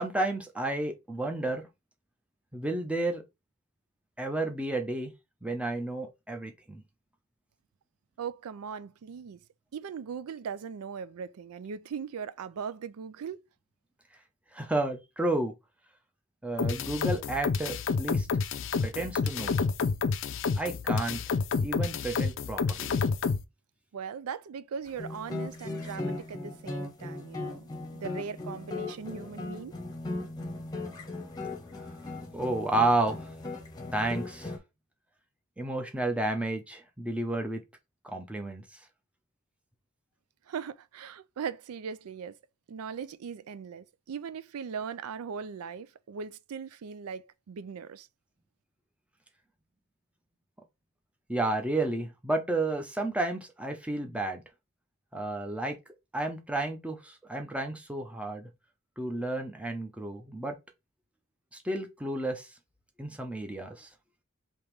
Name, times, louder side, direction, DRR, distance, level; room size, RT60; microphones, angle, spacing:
voice 1, 0.0-1.7 2.5-3.2 4.2-5.1 5.4-6.8 14.5-15.5 16.4-18.3 18.8-19.6 20.6-21.2 21.6-23.0 32.3-33.3 33.9-34.5 35.6-37.6 38.0-38.6 51.3-54.4 55.1-55.8 56.1-58.5 59.0-60.6 61.6-62.5 63.0-63.9, right 2 dB, 5° right, 0.7 m, -31 dB
voice 2, 8.2-9.4 9.7-13.4 23.9-29.7 40.5-42.4 42.7-48.1, right 6 dB, 85° right, 0.4 m, -39 dB
sound 1, 16.6-23.4, left 5 dB, 60° left, 0.4 m, -29 dB
sound 2, 24.9-34.6, left 2 dB, 20° left, 0.9 m, -38 dB
3.5 x 2.9 x 4.6 m
head